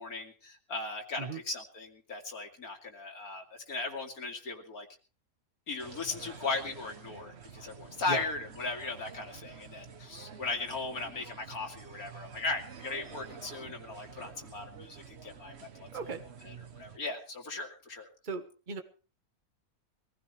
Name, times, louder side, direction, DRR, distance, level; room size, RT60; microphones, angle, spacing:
voice 1, 0.0-4.9 5.7-15.5 15.8-15.9 16.4-18.1, left 3 dB, 85° left, 3 dB, 2.9 m, -37 dB
sound 1, 5.8-17.0, right 6 dB, 50° right, 1.3 m, -49 dB
voice 2, 18.2-18.8, right 4 dB, 35° right, 7 dB, 1.5 m, -37 dB
22.5 x 15.5 x 3.4 m, 0.34 s
omnidirectional pair, 1.5 m